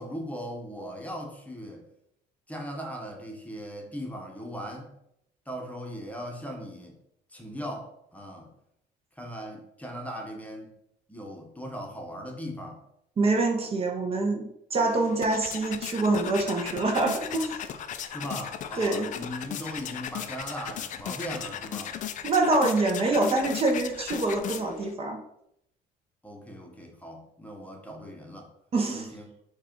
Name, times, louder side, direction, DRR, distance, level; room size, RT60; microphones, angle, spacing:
voice 1, 0.0-1.8 2.5-4.9 5.5-7.0 7.3-8.5 9.2-10.7 11.1-12.8 18.1-22.0 26.2-28.5 28.9-29.3, equal, 10° left, 1 dB, 0.9 m, -38 dB
voice 2, 13.2-17.6 18.8-19.1 22.2-25.2 28.7-29.1, right 2 dB, 35° right, 1 dB, 0.7 m, -25 dB
sound 1, 14.9-24.9, left 9 dB, 50° left, 0.4 m, -37 dB
4.6 x 2.4 x 4.4 m, 0.78 s
cardioid pair, 110°, 17 cm